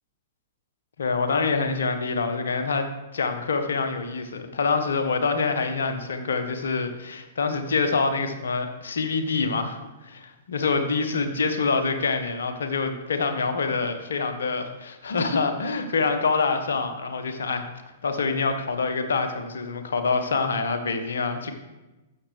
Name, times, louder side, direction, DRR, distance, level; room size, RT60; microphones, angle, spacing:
voice 1, 1.0-17.6 18.0-21.5, left 4 dB, 70° left, 7 dB, 1.1 m, -26 dB
12.5 x 6.7 x 3.4 m, 1.1 s
figure-of-eight pair, 110°, 0 cm